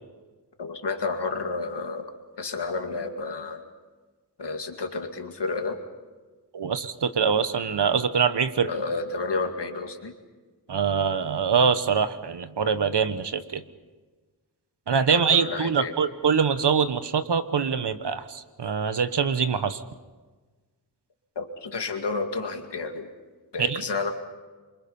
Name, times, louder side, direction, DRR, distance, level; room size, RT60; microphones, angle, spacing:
voice 1, 0.6-2.1 2.4-3.6 4.4-5.8 8.7-10.1 15.1-15.9 21.4-23.1 23.5-24.1, left 3 dB, 90° left, 5 dB, 2.3 m, -30 dB
voice 2, 6.5-8.7 10.7-13.6 14.9-19.8 23.6-23.8, right 6 dB, 85° right, 11 dB, 1.2 m, -24 dB
27.5 x 24.5 x 5.5 m, 1.3 s
wide cardioid pair, 85°, 40 cm